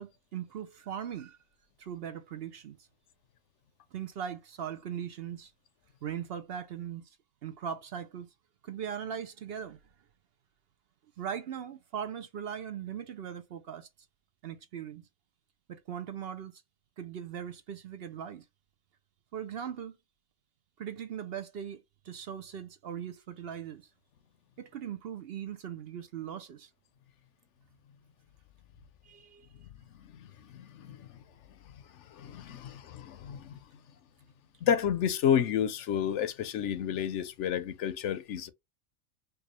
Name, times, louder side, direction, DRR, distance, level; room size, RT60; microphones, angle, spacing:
voice 1, 0.0-1.4 1.8-2.8 3.9-5.5 6.0-7.2 7.4-8.3 8.6-9.8 11.2-13.9 14.4-15.0 15.7-16.6 17.0-18.4 19.3-20.0 20.8-23.9 24.6-26.7 29.0-29.5, right 8 dB, 60° right, 0.7 m, -39 dB
voice 2, 30.5-31.2 32.1-33.6 34.6-38.5, left 9 dB, 70° left, 0.9 m, -30 dB
4.6 x 2.3 x 3.0 m
omnidirectional pair, 1.3 m